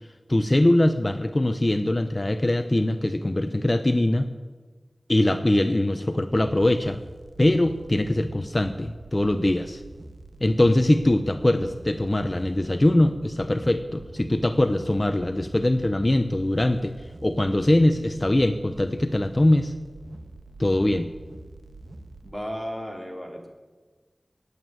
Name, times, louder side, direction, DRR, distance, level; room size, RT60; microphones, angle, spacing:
voice 1, 0.3-4.3 5.1-7.0 7.4-9.8 10.4-16.9 17.2-19.7 20.6-21.1, left 1 dB, 30° left, 8 dB, 0.8 m, -22 dB
sound 1, 6.3-22.3, right 2 dB, 80° right, 1.5 m, -45 dB
voice 2, 22.2-23.5, equal, 15° right, 1 dB, 3.3 m, -34 dB
19.0 x 8.2 x 9.0 m, 1.4 s
wide cardioid pair, 65°, 0 cm